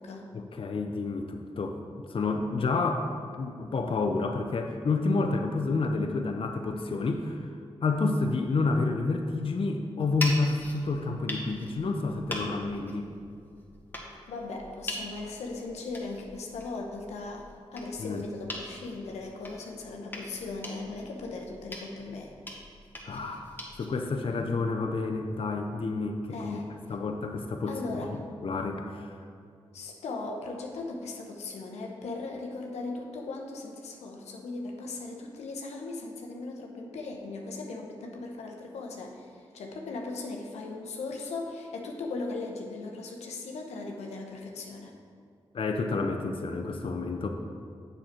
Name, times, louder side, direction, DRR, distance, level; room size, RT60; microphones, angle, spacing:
voice 1, 0.3-1.8 2.1-7.5 7.8-13.1 18.0-18.2 23.0-23.5 23.8-26.6 26.9-29.2 45.5-47.3, left 3 dB, 55° left, 4 dB, 0.6 m, -29 dB
sound 1, 10.0-23.9, left 1 dB, 20° left, 1.7 m, -42 dB
voice 2, 14.3-17.4 17.7-22.3 26.3-26.7 27.7-28.1 29.7-44.9, left 3 dB, 90° left, 1 dB, 0.8 m, -38 dB
7.2 x 6.5 x 4.5 m, 2.3 s
supercardioid pair, 45°, 11 cm